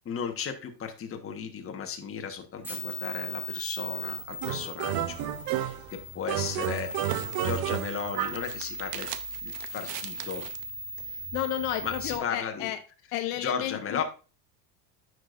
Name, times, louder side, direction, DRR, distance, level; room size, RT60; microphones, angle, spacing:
voice 1, 0.0-5.2 5.5-9.1 9.4-10.5 11.8-12.7 13.4-14.0, left 7 dB, 30° left, 4 dB, 1.4 m, -35 dB
sound 1, 2.6-12.2, equal, 5° right, 1.5 m, -39 dB
sound 2, 4.4-5.9 6.3-8.5, right 12 dB, 50° right, 0.8 m, -31 dB
sound 3, 5.9-10.7, right 13 dB, 85° right, 0.8 m, -43 dB
voice 2, 11.0-12.8 13.1-14.0, left 13 dB, 65° left, 8 dB, 0.9 m, -32 dB
9.4 x 6.3 x 2.6 m, 0.33 s
supercardioid pair, 110°, 47 cm